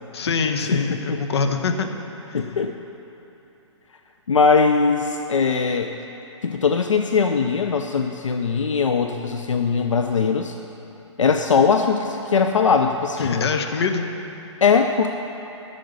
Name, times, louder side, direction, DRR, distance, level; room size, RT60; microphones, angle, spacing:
voice 1, 0.1-1.9 2.3-2.4 13.2-14.0, left 5 dB, 60° left, 5 dB, 1.0 m, -24 dB
voice 2, 0.7-1.2 2.3-2.7 4.3-5.9 6.4-10.5 11.2-13.5 14.6-15.1, left 5 dB, 85° left, 5 dB, 0.6 m, -20 dB
9.6 x 6.7 x 7.8 m, 3.0 s
figure-of-eight pair, 130°, 16 cm